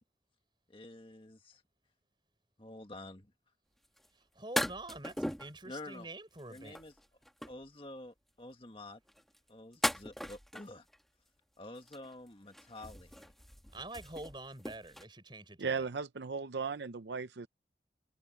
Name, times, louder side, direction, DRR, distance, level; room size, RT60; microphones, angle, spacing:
voice 1, 0.7-1.6 2.6-3.3 5.6-6.1 6.5-6.9 7.4-9.0 9.5-10.9 11.6-13.3, left 2 dB, 30° left, 1.7 m, -49 dB
sound 1, 4.0-4.1 4.6-5.6 6.4-7.6 9.1-11.0 11.8-12.3 12.5-15.1, equal, ahead, 1.4 m, -38 dB
voice 2, 4.3-6.7 13.7-15.9, right 2 dB, 25° right, 6.6 m, -46 dB
voice 3, 15.6-17.5, right 5 dB, 80° right, 0.6 m, -36 dB
head